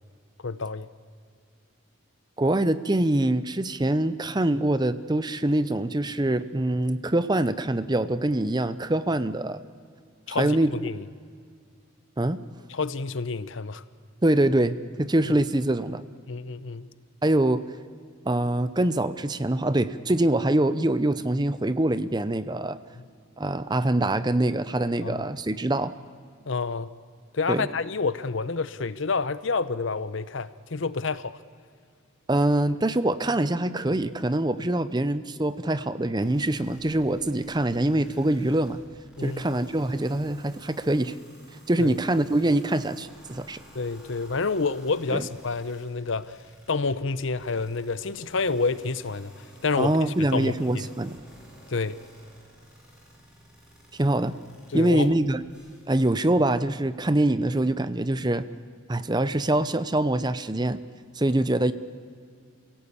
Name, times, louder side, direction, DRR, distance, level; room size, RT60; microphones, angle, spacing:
voice 1, 0.4-0.9 10.3-11.0 12.7-13.8 16.3-16.9 25.0-25.2 26.5-26.9 27.3-31.4 39.2-39.6 41.8-42.0 43.7-46.4 46.7-50.8 51.7-52.0 54.7-55.1, left 4 dB, 65° left, 15 dB, 0.8 m, -29 dB
voice 2, 2.4-9.6 10.4-10.7 12.2-12.4 14.2-16.0 17.2-17.6 18.3-22.8 23.4-25.9 27.5-27.7 32.3-38.8 39.2-41.2 41.7-43.6 45.1-45.3 49.8-51.2 53.9-54.3 54.7-55.4 55.9-58.4 58.9-60.8 61.1-61.7, right 1 dB, 20° right, 14 dB, 0.7 m, -24 dB
sound 1, 36.2-56.1, equal, 5° right, 6.3 m, -53 dB
28.5 x 17.0 x 8.6 m, 2.2 s
head